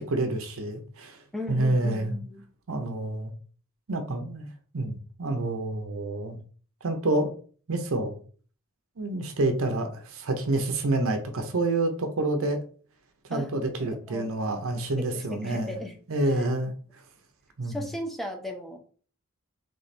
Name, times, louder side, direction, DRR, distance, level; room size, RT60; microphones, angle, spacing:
voice 1, 0.0-1.2 1.5-2.2 2.7-3.3 3.9-4.5 4.7-6.4 6.8-7.3 7.7-8.2 9.0-12.6 13.3-15.8 16.1-16.7 17.6-17.8, right 2 dB, 65° right, 0.7 m, -28 dB
voice 2, 1.3-2.4 13.3-13.5 13.8-14.3 15.0-15.9 17.6-18.8, left 1 dB, ahead, 0.7 m, -36 dB
3.4 x 3.3 x 4.1 m
head